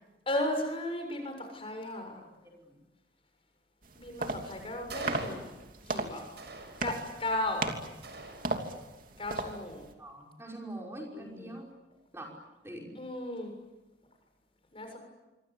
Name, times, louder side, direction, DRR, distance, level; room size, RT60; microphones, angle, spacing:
voice 1, 0.3-2.2 3.9-5.5 5.9-6.3 6.8-7.7 9.2-9.8 11.1-11.5 13.0-13.5 14.7-15.0, left 1 dB, 30° left, 5 dB, 6.9 m, -35 dB
voice 2, 2.1-2.8 10.0-11.7 12.1-12.3 12.6-12.9, right 1 dB, 15° right, -1 dB, 5.5 m, -44 dB
sound 1, 3.8-9.9, right 2 dB, 50° right, 3.0 m, -37 dB
sound 2, 4.9-5.9 6.4-7.3 8.0-9.0, right 2 dB, 65° right, 6.5 m, -44 dB
26.5 x 25.5 x 8.6 m, 1.1 s
head